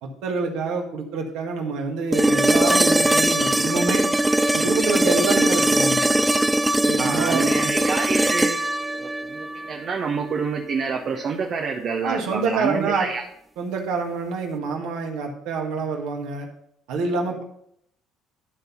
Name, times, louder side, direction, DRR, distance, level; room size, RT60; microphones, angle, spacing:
voice 1, 0.0-4.0 4.5-6.0 6.9-7.4 12.0-13.1 13.6-16.5 16.9-17.4, right 4 dB, 70° right, 2 dB, 1.7 m, -26 dB
sound 1, 2.1-10.2 12.3-12.4, right 1 dB, 10° right, 0.4 m, -21 dB
voice 2, 7.0-8.6 9.0-13.2, right 5 dB, 50° right, 2 dB, 0.9 m, -27 dB
11.5 x 4.0 x 5.8 m, 0.73 s
hypercardioid pair, 60°, 0 cm